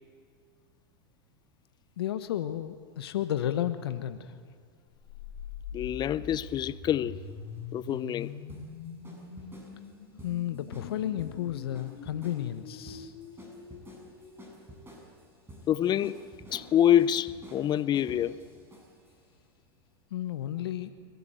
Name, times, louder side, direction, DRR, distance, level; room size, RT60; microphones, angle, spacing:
voice 1, 2.0-4.3 10.2-13.1 20.1-20.9, left 11 dB, 75° left, 1.1 m, -32 dB
sound 1, 5.0-14.9, left 6 dB, 60° left, 3.9 m, -44 dB
voice 2, 5.7-7.2 7.7-8.3 15.7-16.2 16.5-18.4, left 10 dB, 35° left, 0.7 m, -26 dB
sound 2, 7.1-19.2, right 1 dB, 20° right, 7.2 m, -51 dB
28.0 x 15.0 x 9.0 m
hypercardioid pair, 100°, 13 cm